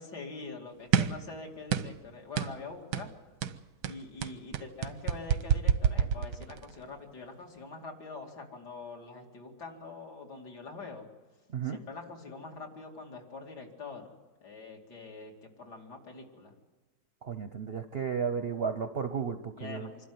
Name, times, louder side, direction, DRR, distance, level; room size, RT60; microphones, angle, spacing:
voice 1, 0.0-3.1 3.9-11.1 11.6-14.1 14.4-16.5 19.6-20.1, left 3 dB, 70° left, 1 dB, 3.2 m, -44 dB
sound 1, 0.9-1.3 1.7-2.0 2.4-2.6 2.9-3.1 3.4-6.7, right 8 dB, 90° right, 1.5 m, -28 dB
voice 2, 17.2-19.9, right 6 dB, 55° right, 9 dB, 0.7 m, -33 dB
26.0 x 12.5 x 9.3 m, 1.3 s
omnidirectional pair, 1.8 m